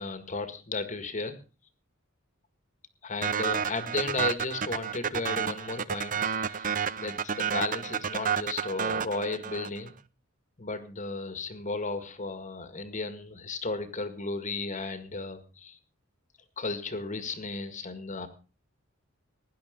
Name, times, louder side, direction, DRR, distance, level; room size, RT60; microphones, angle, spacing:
voice 1, 0.0-1.3 3.0-6.7 7.0-9.9 10.6-15.8 16.6-18.3, left 3 dB, 35° left, 9 dB, 1.8 m, -34 dB
sound 1, 3.2-9.9, right 7 dB, 40° right, 0.6 m, -30 dB
17.0 x 10.5 x 5.1 m, 0.34 s
head